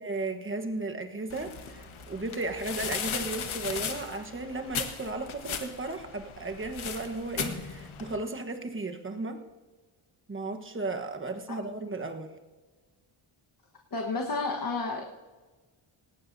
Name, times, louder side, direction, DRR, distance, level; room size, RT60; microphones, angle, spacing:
voice 1, 0.0-9.4 10.3-12.3, right 2 dB, 25° right, 5 dB, 1.2 m, -35 dB
sound 1, 1.3-8.2, left 7 dB, 70° left, 1.4 m, -37 dB
voice 2, 13.9-15.2, left 3 dB, 45° left, 0 dB, 1.4 m, -31 dB
18.0 x 17.5 x 2.7 m, 1.3 s
wide cardioid pair, 130°, 50 cm